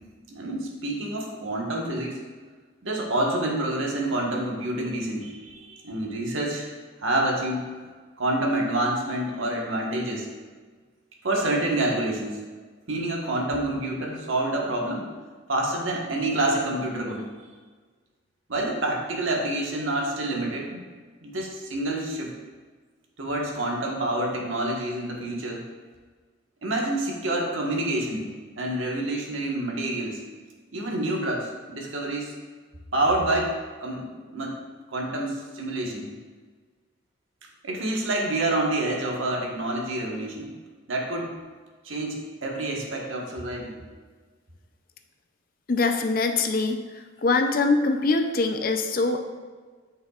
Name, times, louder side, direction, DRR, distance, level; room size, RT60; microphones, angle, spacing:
voice 1, 0.3-2.2 2.8-6.7 7.0-7.7 8.2-10.3 11.2-12.4 12.9-15.1 15.5-17.3 18.5-20.8 21.2-22.3 23.2-25.6 26.6-28.3 28.6-30.2 30.7-32.3 32.9-33.5 33.8-34.6 34.9-36.1 37.6-40.5 40.9-41.3 41.8-43.8, right 1 dB, 85° right, -1 dB, 1.4 m, -27 dB
voice 2, 45.7-46.8 47.2-49.2, left 3 dB, 45° left, 6 dB, 0.5 m, -23 dB
9.8 x 5.6 x 2.4 m, 1.5 s
head